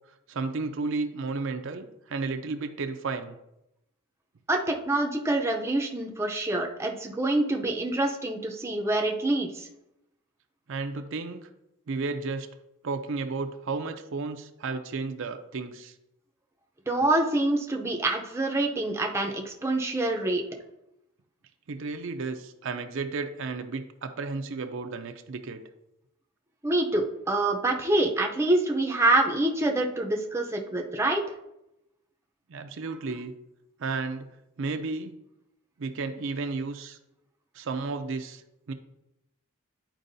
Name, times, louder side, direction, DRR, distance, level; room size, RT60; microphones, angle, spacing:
voice 1, 0.3-3.4 10.7-11.5 11.9-12.5 12.8-15.9 21.7-25.6 32.5-33.3 33.8-34.3 34.6-35.2 35.8-37.0 37.5-38.4 38.7-38.8, right 4 dB, 60° right, 7 dB, 0.5 m, -33 dB
voice 2, 4.5-9.7 16.9-20.4 26.6-31.2, right 2 dB, 10° right, 2 dB, 0.6 m, -26 dB
10.0 x 4.5 x 2.7 m, 0.87 s
head